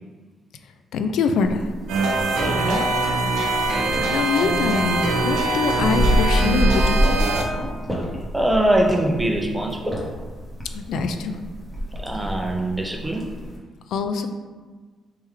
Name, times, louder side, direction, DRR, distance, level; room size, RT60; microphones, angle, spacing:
voice 1, 0.9-1.6 3.7-7.0 10.7-11.4 13.9-14.3, left 5 dB, 75° left, 7 dB, 0.3 m, -24 dB
sound 1, 1.4-13.6, equal, 10° left, 1.0 m, -27 dB
sound 2, 1.9-7.4, right 2 dB, 85° right, 0.7 m, -22 dB
voice 2, 2.3-2.9 8.3-10.0 12.0-13.4, right 1 dB, 10° right, 1 dB, 0.5 m, -23 dB
3.4 x 3.2 x 3.2 m, 1.4 s
cardioid pair, 90°, 0 cm